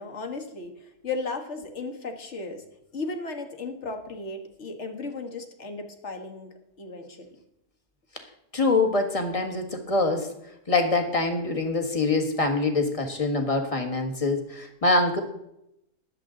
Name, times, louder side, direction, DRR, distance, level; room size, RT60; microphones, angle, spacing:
voice 1, 0.0-2.6 2.9-7.3, left 3 dB, 45° left, 5 dB, 1.7 m, -35 dB
voice 2, 8.5-10.3 10.7-15.2, left 3 dB, 20° left, 4 dB, 1.5 m, -24 dB
20.0 x 7.8 x 3.8 m, 0.82 s
omnidirectional pair, 1.7 m